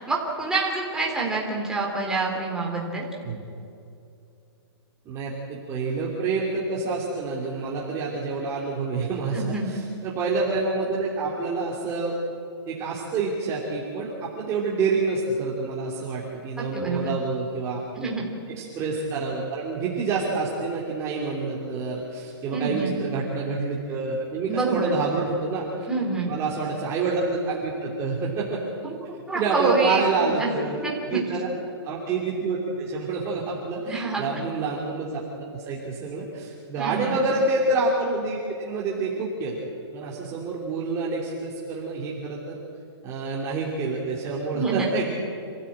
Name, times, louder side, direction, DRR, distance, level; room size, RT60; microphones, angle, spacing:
voice 1, 0.0-3.0 9.3-9.7 16.6-17.2 18.0-18.3 22.5-23.0 24.5-25.0 25.9-26.3 29.1-30.5 30.8-31.2 33.9-34.3 36.8-37.2 44.5-44.9, right 3 dB, 5° right, -2 dB, 3.7 m, -27 dB
voice 2, 5.0-12.2 12.7-18.1 18.5-25.6 26.3-28.7 29.3-30.7 31.0-31.5 31.8-39.6 39.9-42.6 43.0-45.1, right 3 dB, 20° right, -5 dB, 3.2 m, -28 dB
28.0 x 15.5 x 8.9 m, 2.6 s
hypercardioid pair, 160°, 14 cm